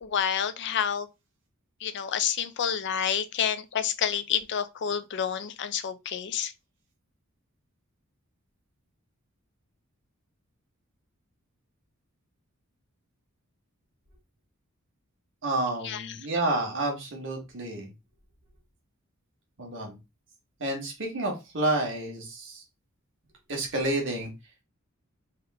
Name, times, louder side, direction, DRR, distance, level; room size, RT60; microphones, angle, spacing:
voice 1, 0.0-1.1 1.8-6.5 15.8-16.3, left 8 dB, 55° left, 0.5 m, -29 dB
voice 2, 15.4-17.9 19.6-19.9 20.6-22.6 23.5-24.3, right 2 dB, 60° right, 1.4 m, -29 dB
3.5 x 2.9 x 3.5 m
head